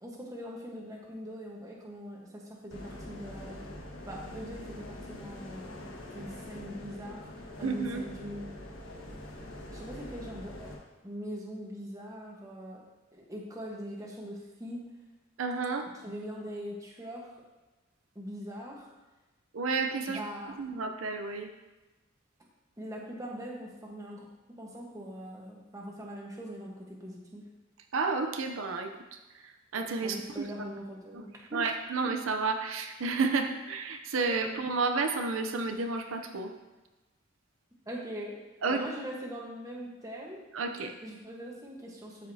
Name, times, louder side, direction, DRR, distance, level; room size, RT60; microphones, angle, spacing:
voice 1, 0.0-3.6 4.1-5.9 6.1-7.3 7.6-8.5 9.7-10.7 11.0-12.8 13.1-14.8 16.0-17.4 18.1-18.9 20.1-20.6 22.8-24.3 24.6-27.4 30.0-31.6 37.9-38.3 38.7-40.4 41.0-42.3, equal, 15° right, -2 dB, 1.1 m, -42 dB
sound 1, 2.7-10.8, left 1 dB, 70° left, 1.4 m, -44 dB
voice 2, 7.6-8.1 15.4-15.9 19.5-20.2 20.6-21.5 27.9-28.9 29.3-30.5 31.1-31.2 31.5-36.5 38.6-38.9 40.5-40.9, right 4 dB, 75° right, 5 dB, 0.6 m, -31 dB
12.5 x 5.0 x 2.7 m, 1.1 s
head